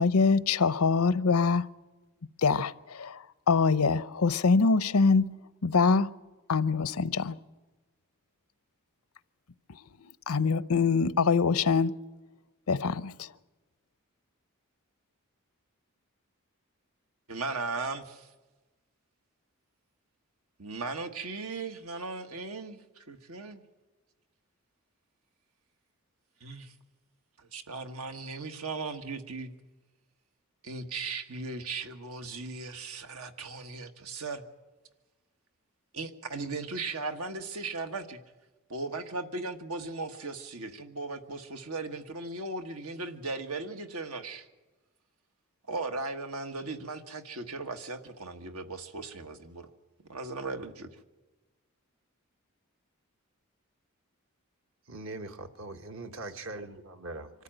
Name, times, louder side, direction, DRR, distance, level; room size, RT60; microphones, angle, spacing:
voice 1, 0.0-1.7 2.4-5.4 5.6-6.1 6.5-7.4 10.3-11.9 12.7-13.3, left 4 dB, 90° left, 0.7 m, -24 dB
voice 2, 17.3-18.3 20.6-23.6 26.4-26.7 27.4-29.5 30.6-34.4 35.9-38.2 38.7-44.5 45.7-49.7 50.1-50.9, right 3 dB, 90° right, 1.6 m, -37 dB
voice 3, 54.9-57.3, right 2 dB, 65° right, 1.4 m, -41 dB
25.0 x 14.0 x 9.1 m
head